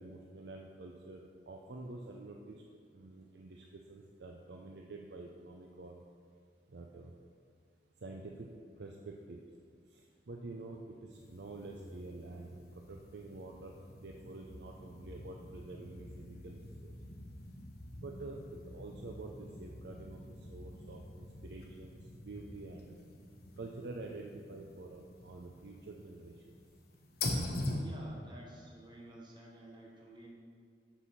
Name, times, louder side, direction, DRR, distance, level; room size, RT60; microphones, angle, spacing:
voice 1, 0.0-2.6 2.9-6.0 6.7-7.1 8.0-8.5 8.8-9.4 9.9-16.9 17.9-20.2 20.5-23.0 23.6-26.5, right 2 dB, 65° right, 1 dB, 0.5 m, -48 dB
sound 1, 11.1-27.8, left 2 dB, 60° left, 1.0 m, -45 dB
voice 2, 27.7-30.3, right 1 dB, 25° right, -2 dB, 1.0 m, -52 dB
6.3 x 6.0 x 5.6 m, 2.1 s
head